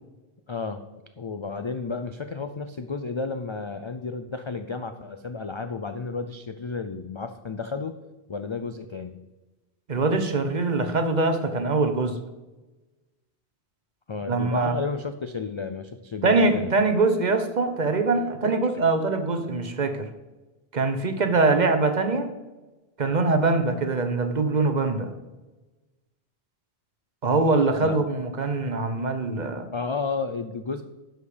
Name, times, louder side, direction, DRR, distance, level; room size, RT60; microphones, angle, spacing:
voice 1, 0.5-0.8 1.2-7.9 8.3-9.2 14.1-16.7 18.2-18.5 27.8-28.0 29.7-30.8, left 4 dB, 45° left, 9 dB, 0.3 m, -32 dB
voice 2, 9.9-12.2 14.3-14.8 16.2-20.1 20.7-22.3 23.0-25.1 27.2-29.7, right 3 dB, 45° right, 8 dB, 0.9 m, -23 dB
10.5 x 6.5 x 5.0 m, 1.1 s
omnidirectional pair, 1.1 m